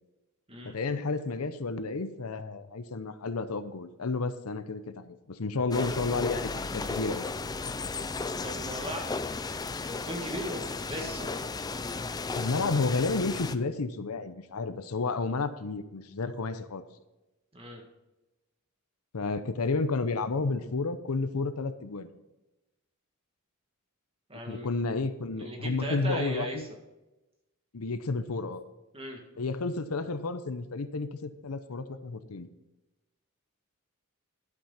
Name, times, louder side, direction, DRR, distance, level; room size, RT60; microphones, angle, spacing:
voice 1, 0.6-7.3 12.3-16.8 19.1-22.1 24.5-26.7 27.7-28.6 29.4-32.5, left 3 dB, 80° left, 11 dB, 0.8 m, -31 dB
sound 1, 5.7-13.6, left 3 dB, 20° left, 0.4 m, -34 dB
voice 2, 8.3-9.0 9.8-11.3 17.5-17.8 24.3-24.7 25.4-26.6 28.9-29.2, right 1 dB, 25° right, 1 dB, 2.0 m, -37 dB
11.5 x 6.2 x 5.7 m, 1.0 s
head